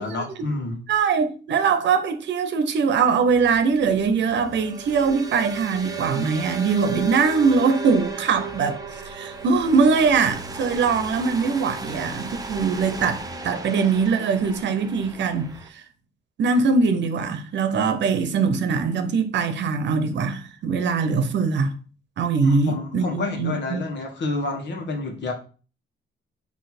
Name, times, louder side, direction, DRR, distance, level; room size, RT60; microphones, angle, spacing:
voice 1, 0.0-0.8 22.4-25.3, left 2 dB, 60° left, 1.4 m, -29 dB
voice 2, 0.9-15.5 15.7-15.8 16.4-21.7 22.2-23.8, right 5 dB, 65° right, 0.8 m, -22 dB
sound 1, 3.3-15.7, right 4 dB, 20° right, 0.7 m, -35 dB
4.3 x 2.9 x 4.3 m
cardioid pair, 90°, 20 cm